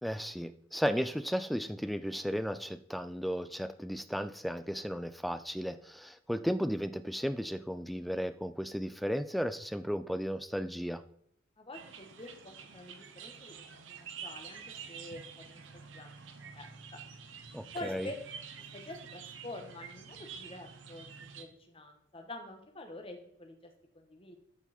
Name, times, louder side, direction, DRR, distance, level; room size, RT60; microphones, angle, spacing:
voice 1, 0.0-11.0 17.5-18.1, equal, ahead, 12 dB, 0.3 m, -34 dB
voice 2, 11.6-16.1 16.4-17.0 17.7-18.2 18.6-24.3, left 1 dB, 30° left, 4 dB, 1.3 m, -47 dB
sound 1, 11.7-21.4, right 6 dB, 75° right, 0.9 m, -48 dB
13.5 x 4.8 x 4.3 m, 0.70 s
head